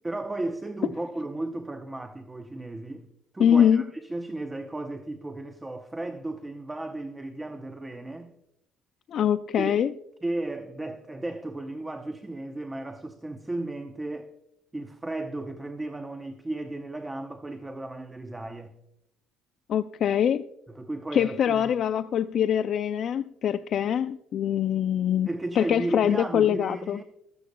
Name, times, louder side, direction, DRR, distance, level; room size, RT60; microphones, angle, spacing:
voice 1, 0.0-3.1 3.3-8.3 9.6-9.8 10.2-14.3 14.7-18.7 20.7-21.7 25.3-27.0, right 2 dB, 10° right, 0.7 m, -34 dB
voice 2, 3.4-3.8 9.1-9.9 19.7-20.5 21.1-25.3 25.6-27.0, left 9 dB, 50° left, 0.3 m, -23 dB
15.0 x 14.0 x 2.2 m
cardioid pair, 130°, 0 cm